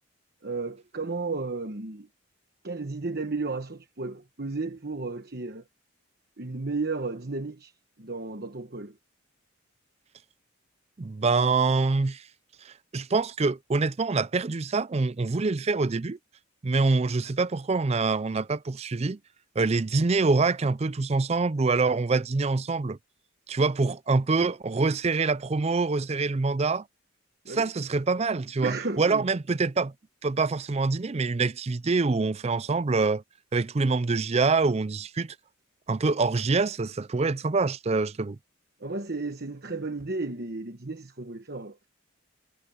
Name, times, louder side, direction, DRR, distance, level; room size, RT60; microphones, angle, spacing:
voice 1, 0.4-2.1 2.6-5.6 6.4-9.0 27.4-27.7 28.6-29.3 38.8-41.9, right 3 dB, 45° right, 1.2 m, -33 dB
voice 2, 11.0-12.2 12.6-16.2 16.6-19.2 19.6-23.0 23.5-26.8 27.5-29.9 30.2-33.2 33.5-35.3 35.9-38.4, right 3 dB, 30° right, 0.4 m, -25 dB
head